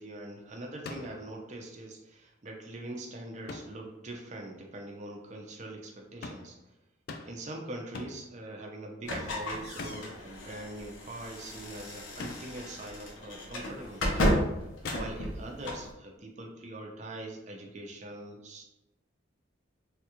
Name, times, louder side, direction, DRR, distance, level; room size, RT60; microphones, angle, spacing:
voice 1, 0.0-6.6 7.3-14.2 15.0-18.6, right 1 dB, 35° right, 1 dB, 0.5 m, -43 dB
sound 1, 0.9-1.3 3.5-3.9 6.2-6.6 7.1-7.5 8.0-8.3 9.8-10.3 12.2-12.6 14.8-15.4, left 3 dB, 50° left, 0.3 m, -43 dB
sound 2, 9.0-15.9, equal, 85° left, 0.7 m, -33 dB
3.3 x 2.3 x 2.9 m, 0.92 s
head